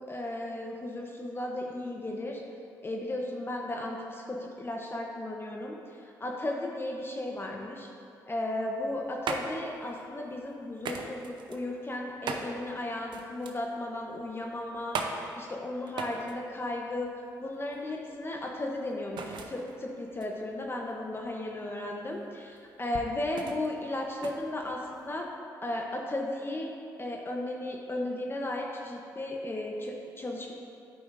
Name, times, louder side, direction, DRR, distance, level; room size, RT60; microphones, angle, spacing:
voice 1, 0.0-2.4 2.8-7.9 8.3-17.1 17.4-25.3 25.6-26.7 27.0-30.5, left 1 dB, 30° left, 0 dB, 0.8 m, -35 dB
sound 1, 8.7-25.3, right 4 dB, 70° right, 0.6 m, -41 dB
11.0 x 4.9 x 2.5 m, 2.6 s
supercardioid pair, 55°, 8 cm